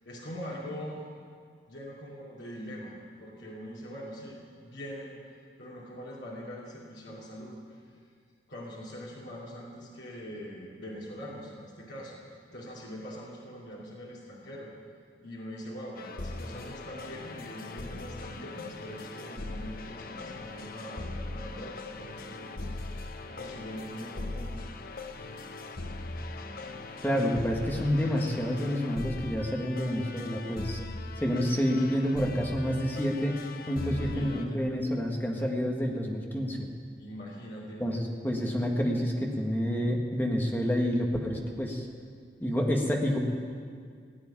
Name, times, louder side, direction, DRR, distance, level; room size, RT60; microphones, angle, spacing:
voice 1, 0.0-1.1 1.7-5.1 5.6-7.8 8.5-12.2 12.5-14.7 15.2-24.6 33.8-34.6 37.0-37.8, equal, 75° left, -5 dB, 2.7 m, -43 dB
sound 1, 16.0-34.5, left 2 dB, 50° left, 0.8 m, -40 dB
voice 2, 27.0-30.8 31.2-36.7 37.8-41.9 42.4-43.2, equal, 10° left, 0 dB, 1.6 m, -28 dB
17.0 x 8.5 x 9.9 m, 2.1 s
head